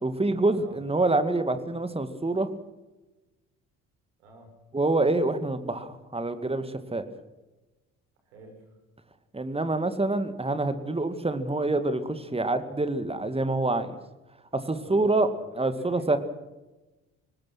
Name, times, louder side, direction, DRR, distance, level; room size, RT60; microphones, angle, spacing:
voice 1, 0.0-2.5 4.7-7.1 9.3-14.0 14.5-15.3 15.6-16.2, right 2 dB, 15° right, 10 dB, 2.2 m, -26 dB
voice 2, 4.2-4.5 8.2-8.8 14.8-15.4 15.7-16.2, right 3 dB, 70° right, 2 dB, 6.5 m, -47 dB
23.5 x 19.5 x 6.2 m, 1.1 s
figure-of-eight pair, 50°, 41 cm